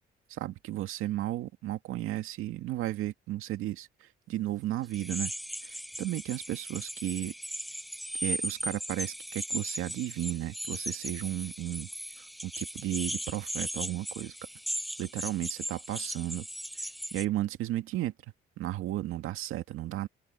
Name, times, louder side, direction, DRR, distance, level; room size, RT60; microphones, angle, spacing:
voice 1, 0.3-5.3 5.6-7.3 8.2-11.9 12.2-14.3 15.0-16.5 16.8-18.1 18.6-20.1, right 14 dB, 85° right, 2.1 m, -34 dB
sound 1, 4.9-17.2, equal, ahead, 0.5 m, -38 dB
open air
cardioid pair, 75°, 21 cm